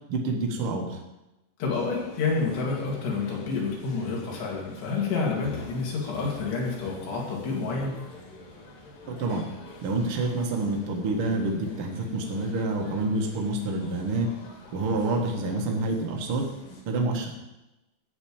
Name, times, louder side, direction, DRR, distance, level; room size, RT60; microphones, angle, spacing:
voice 1, 0.1-1.0 9.2-9.5 9.8-14.3 14.7-16.5 16.9-17.4, right 2 dB, 75° right, 1 dB, 1.2 m, -27 dB
voice 2, 1.6-8.0, left 4 dB, 70° left, -3 dB, 4.7 m, -29 dB
sound 1, 1.7-16.8, left 2 dB, 55° left, 3.5 m, -47 dB
13.5 x 4.7 x 8.8 m, 0.97 s
omnidirectional pair, 5.1 m